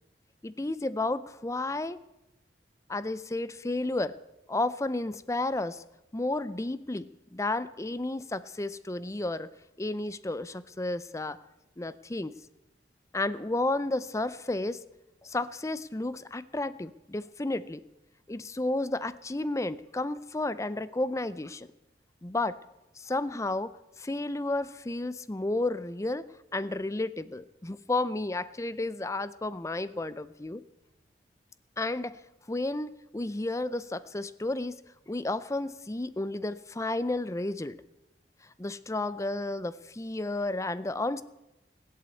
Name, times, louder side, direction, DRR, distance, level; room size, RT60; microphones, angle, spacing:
voice 1, 0.4-2.0 2.9-4.2 4.5-5.8 6.1-9.5 9.8-11.4 11.8-12.3 13.1-14.8 15.2-17.8 18.3-21.7 22.2-22.6 23.0-26.3 26.5-30.6 31.8-32.2 32.5-34.8 35.1-37.8 38.6-41.2, left 2 dB, 15° left, 16 dB, 0.5 m, -32 dB
19.0 x 8.5 x 8.4 m, 0.94 s
head